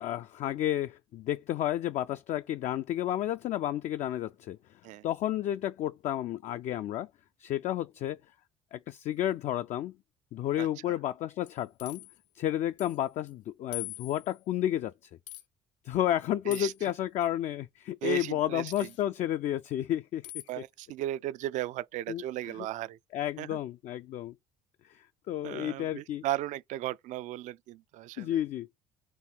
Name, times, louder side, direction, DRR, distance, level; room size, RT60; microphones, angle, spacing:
voice 1, 0.0-4.6 5.0-7.1 7.4-8.2 8.7-9.9 10.3-12.0 12.3-14.9 15.8-20.2 22.1-22.2 23.1-24.3 24.9-26.2 28.2-28.7, left 12 dB, 50° left, 0.4 m, -31 dB
voice 2, 10.6-10.9 16.5-16.9 18.0-18.9 20.5-23.0 23.4-23.6 25.4-28.4, right 14 dB, 55° right, 0.4 m, -36 dB
sound 1, 11.5-12.2 12.8-13.0 13.3-13.4 13.7-14.4 15.3-15.4 16.5-16.8 18.7-19.0 20.2-20.5, left 17 dB, 85° left, 0.9 m, -42 dB
4.7 x 2.7 x 3.8 m
hypercardioid pair, 60°, 15 cm